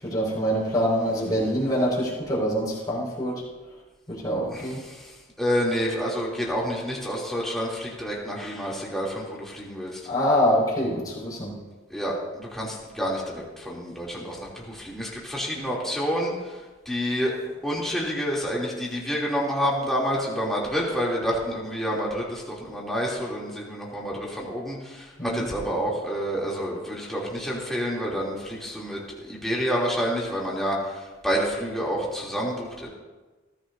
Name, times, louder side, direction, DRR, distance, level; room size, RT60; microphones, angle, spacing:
voice 1, 0.0-3.4 4.1-4.8 10.0-11.5 25.2-25.4, equal, 20° left, -6 dB, 5.6 m, -25 dB
voice 2, 4.5-10.0 11.9-17.3 17.6-32.9, equal, ahead, -5 dB, 3.2 m, -28 dB
21.5 x 14.5 x 2.8 m, 1.2 s
head